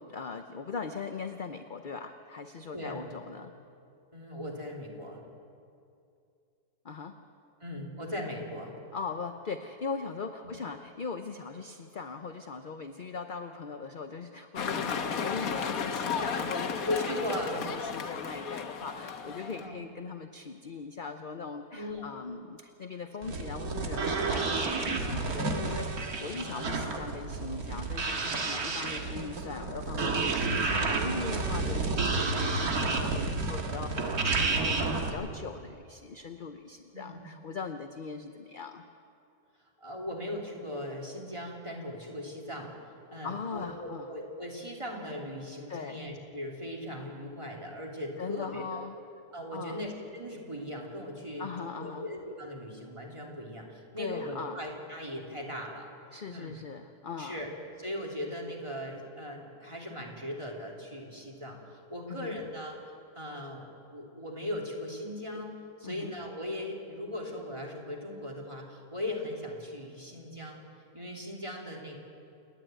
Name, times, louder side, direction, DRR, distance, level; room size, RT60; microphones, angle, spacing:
voice 1, 0.0-3.5 6.8-7.2 8.9-17.0 17.5-38.8 43.2-44.1 45.7-46.0 48.2-49.0 49.5-49.8 51.4-52.1 54.0-54.6 56.1-57.4 62.1-62.4 65.8-66.1, left 5 dB, 45° left, 7 dB, 0.7 m, -40 dB
voice 2, 2.7-3.1 4.1-5.2 7.6-8.8 16.9-17.6 19.6-19.8 21.7-22.0 25.0-25.2 26.4-26.8 28.5-28.7 33.7-34.1 36.9-37.3 39.8-42.7 43.1-48.8 49.3-55.9 56.3-56.6 57.2-57.5 57.8-70.6 70.9-72.0, left 1 dB, 15° right, -1 dB, 3.1 m, -38 dB
sound 1, 14.6-19.7, left 6 dB, 60° left, 1.5 m, -34 dB
sound 2, 23.2-35.1, right 3 dB, 60° right, 2.1 m, -30 dB
28.5 x 11.0 x 9.1 m, 2.5 s
omnidirectional pair, 1.8 m